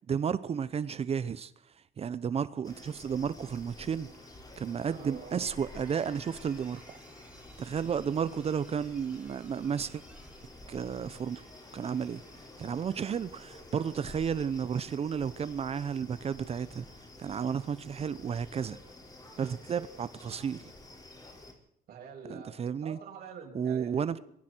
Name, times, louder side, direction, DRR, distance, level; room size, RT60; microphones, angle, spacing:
voice 1, 0.1-1.5 2.0-4.1 4.6-7.0 7.6-10.0 10.7-11.4 11.7-12.2 12.6-16.8 17.2-18.8 19.4-20.7 22.3-23.0 23.5-24.2, right 7 dB, 35° right, 0.8 m, -32 dB
sound 1, 2.6-21.5, left 2 dB, 20° left, 5.2 m, -50 dB
voice 2, 4.9-5.4 21.9-22.5 22.8-24.2, right 5 dB, 65° right, 7.7 m, -46 dB
sound 2, 5.6-12.7, right 2 dB, 5° right, 5.5 m, -60 dB
26.5 x 23.0 x 4.6 m
cardioid pair, 110°, 17 cm